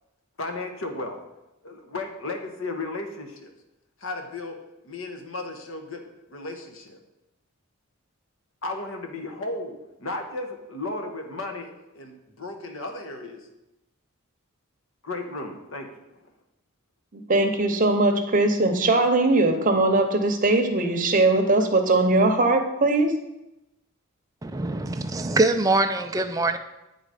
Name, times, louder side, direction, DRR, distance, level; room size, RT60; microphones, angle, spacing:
voice 1, 0.4-1.2 1.6-3.5 4.0-4.6 4.8-6.0 6.3-7.0 8.6-13.4 15.0-15.9, left 2 dB, 65° left, 4 dB, 1.0 m, -34 dB
voice 2, 17.1-23.1, right 2 dB, 40° right, 5 dB, 0.8 m, -20 dB
voice 3, 24.4-26.6, right 2 dB, 15° right, 7 dB, 0.4 m, -23 dB
8.6 x 4.0 x 4.9 m, 0.95 s
head